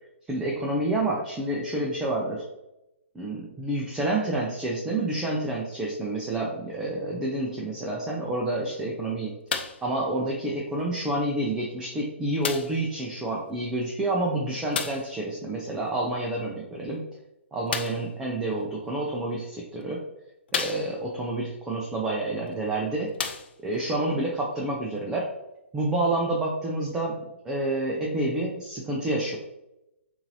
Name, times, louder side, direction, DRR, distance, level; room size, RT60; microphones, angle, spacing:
voice 1, 0.3-2.4 3.1-9.4 9.8-17.0 17.5-20.1 20.5-23.2 23.6-25.3 25.7-29.4, right 2 dB, 10° right, -3 dB, 0.5 m, -28 dB
sound 1, 9.5-9.9 10.8-10.9 12.4-12.9 14.7-15.1 17.7-18.1 19.1-19.2 19.8-19.9 20.5-21.2 22.5-22.6 23.1-23.8 24.7-24.8, left 6 dB, 50° left, 0.5 m, -32 dB
6.7 x 2.6 x 2.7 m, 0.91 s
figure-of-eight pair, 125°, 7 cm